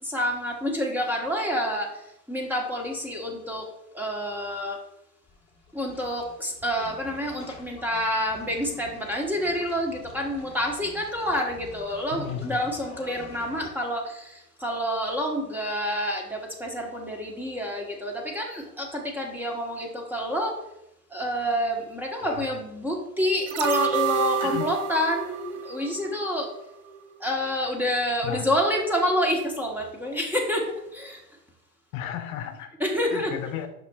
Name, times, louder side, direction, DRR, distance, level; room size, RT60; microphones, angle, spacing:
voice 1, 0.0-3.6 3.9-4.8 5.7-20.6 21.1-26.5 27.2-31.2 32.8-33.3, equal, 5° right, 0 dB, 1.2 m, -28 dB
sound 1, 5.2-13.7, left 4 dB, 10° left, 1.4 m, -47 dB
voice 2, 12.1-12.7 22.2-22.5 24.4-24.7 28.2-28.5 31.9-32.8 33.1-33.7, left 10 dB, 55° left, 7 dB, 0.8 m, -34 dB
sound 2, 23.5-26.6 26.9-27.0, right 9 dB, 25° right, 0.4 m, -29 dB
8.1 x 6.0 x 2.4 m, 0.85 s
hypercardioid pair, 100°, 48 cm